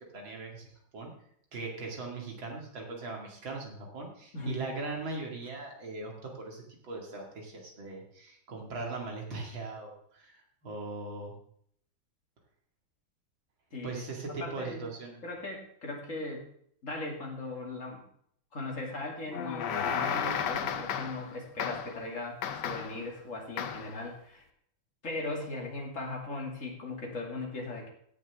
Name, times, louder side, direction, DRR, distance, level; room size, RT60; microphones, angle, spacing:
voice 1, 0.1-0.7 0.9-1.1 1.5-11.3 13.8-15.2, right 3 dB, 75° right, 0 dB, 3.1 m, -40 dB
voice 2, 4.3-4.7 13.7-14.0 14.3-14.8 15.2-16.5 16.8-18.0 18.5-24.4 25.0-27.9, left 2 dB, 40° left, -1 dB, 2.7 m, -38 dB
sound 1, 19.3-21.3 21.6-22.0 22.4-23.0 23.6-24.0, left 8 dB, 65° left, 1.3 m, -33 dB
16.5 x 7.5 x 3.6 m, 0.65 s
omnidirectional pair, 2.2 m